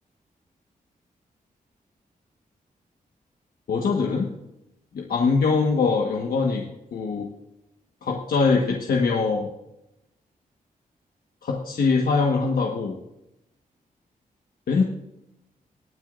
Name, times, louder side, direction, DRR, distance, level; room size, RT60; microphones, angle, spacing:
voice 1, 3.7-4.3 4.9-6.7 6.9-7.3 8.0-9.5 11.4-13.0 14.7-14.8, left 4 dB, 85° left, 0 dB, 1.4 m, -22 dB
20.0 x 9.5 x 2.6 m, 0.87 s
wide cardioid pair, 165°, 15 cm